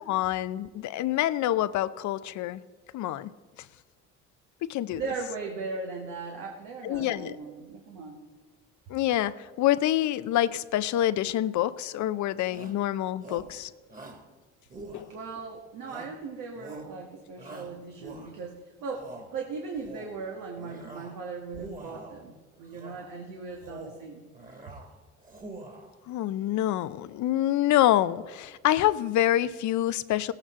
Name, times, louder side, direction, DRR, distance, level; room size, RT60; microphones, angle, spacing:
voice 1, 0.1-2.6 2.9-3.3 4.6-5.0 6.8-7.4 8.9-13.7 14.9-15.1 26.1-30.3, left 13 dB, 65° left, 15 dB, 0.6 m, -26 dB
voice 2, 4.9-8.2 15.1-24.3, right 4 dB, 80° right, 1 dB, 1.5 m, -38 dB
Shout, 12.5-12.8 13.2-13.6 13.9-14.3 14.7-15.4 15.8-16.2 16.6-16.9 17.4-18.5 18.9-19.3 19.7-20.2 20.6-21.2 21.5-22.2 22.7-23.1 23.5-24.0 24.3-24.9 25.2-25.9, right 2 dB, 25° right, 2.2 m, -45 dB
17.5 x 8.8 x 3.7 m, 1.4 s
supercardioid pair, 80°, 32 cm